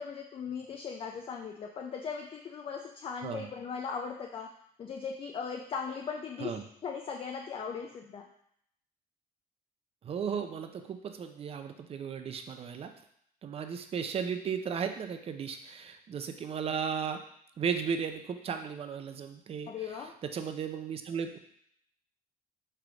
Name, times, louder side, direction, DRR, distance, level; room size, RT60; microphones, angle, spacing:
voice 1, 0.0-4.5 4.8-8.3 19.7-20.1, left 6 dB, 35° left, 2 dB, 0.4 m, -38 dB
voice 2, 10.0-12.9 13.4-17.2 17.6-19.7 20.3-21.4, right 7 dB, 35° right, 7 dB, 0.4 m, -35 dB
3.5 x 3.3 x 3.8 m, 0.71 s
cardioid pair, 110°, 17 cm